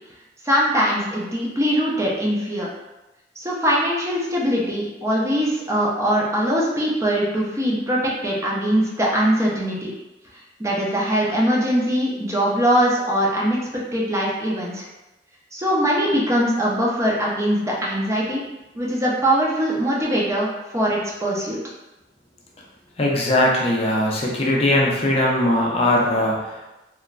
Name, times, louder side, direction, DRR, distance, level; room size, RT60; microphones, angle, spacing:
voice 1, 0.4-2.7 3.4-9.9 10.6-13.6 13.9-14.9 15.5-18.4 18.7-21.6, equal, 15° right, -4 dB, 0.5 m, -21 dB
voice 2, 23.0-26.7, left 1 dB, 35° left, -3 dB, 0.5 m, -20 dB
3.0 x 2.1 x 2.4 m, 1.0 s
head